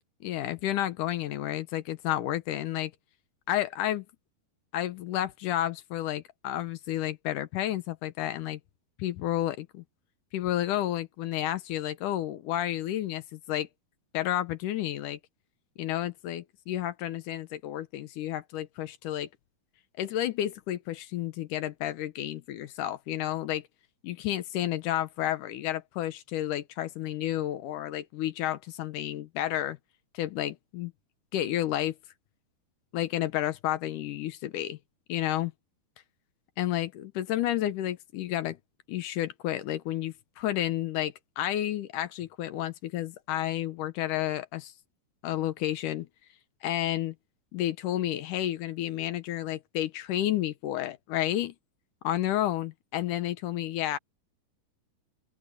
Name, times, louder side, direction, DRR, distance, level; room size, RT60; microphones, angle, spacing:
voice 1, 0.2-2.9 3.5-4.1 4.7-8.6 9.0-9.8 10.3-13.7 14.1-15.2 15.8-19.3 20.0-23.6 24.0-29.8 30.1-30.9 31.3-31.9 32.9-34.8 35.1-35.5 36.6-38.6 38.9-44.7 45.2-46.1 46.6-47.2 47.5-51.5 52.0-54.0, left 13 dB, 70° left, 2.2 m, -31 dB
open air
omnidirectional pair, 4.2 m